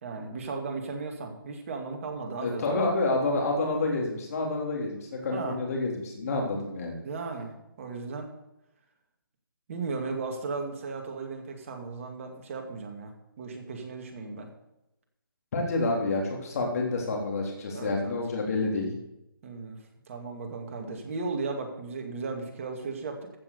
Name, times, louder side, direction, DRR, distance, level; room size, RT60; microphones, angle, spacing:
voice 1, 0.0-2.8 5.3-5.6 7.0-8.3 9.7-14.5 17.7-18.2 19.4-19.8 20.1-23.3, right 4 dB, 35° right, 3 dB, 2.3 m, -36 dB
voice 2, 2.4-7.0 15.5-18.9, left 2 dB, 45° left, 0 dB, 3.6 m, -28 dB
15.0 x 6.1 x 6.8 m, 0.89 s
figure-of-eight pair, 155°, 12 cm